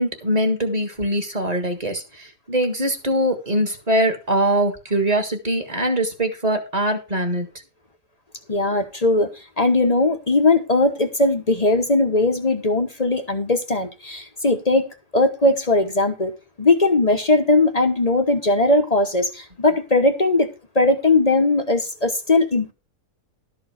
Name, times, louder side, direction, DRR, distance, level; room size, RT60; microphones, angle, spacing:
voice 1, 0.0-7.5, right 1 dB, 25° right, 1.7 m, -22 dB
voice 2, 8.5-16.3 16.6-22.7, left 2 dB, 30° left, 1.0 m, -19 dB
12.5 x 4.6 x 6.4 m
omnidirectional pair, 1.7 m